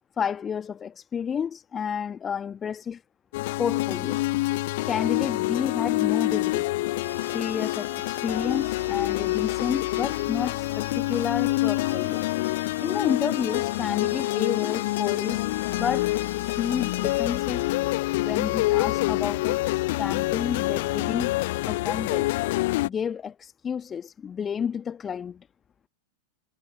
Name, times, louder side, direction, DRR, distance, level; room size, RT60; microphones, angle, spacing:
voice 1, 0.2-3.0 3.6-4.2 4.9-6.7 7.3-12.2 12.8-15.5 15.8-16.1 16.4-17.7 18.2-19.6 20.0-21.4 21.7-22.3 22.8-25.5, left 7 dB, 20° left, 1.3 m, -30 dB
sound 1, 3.3-22.9, left 19 dB, 50° left, 0.8 m, -26 dB
sound 2, 7.0-17.7, equal, 90° left, 5.4 m, -48 dB
figure-of-eight pair, 90°, 0 cm